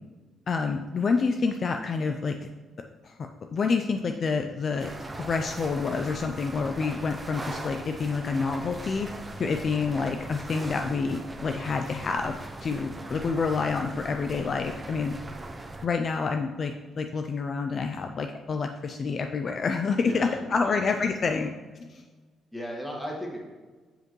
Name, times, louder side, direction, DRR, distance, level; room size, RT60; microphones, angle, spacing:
voice 1, 0.5-2.4 3.0-3.1 3.5-4.9 5.2-9.1 9.4-15.2 15.8-21.5 21.9-22.0, left 4 dB, 45° left, 5 dB, 0.4 m, -28 dB
sound 1, 4.8-15.9, right 2 dB, 20° right, 0.7 m, -40 dB
voice 2, 20.0-21.5 22.5-23.4, equal, 5° left, -2 dB, 1.8 m, -38 dB
7.5 x 5.1 x 3.1 m, 1.3 s
cardioid pair, 90°, 0 cm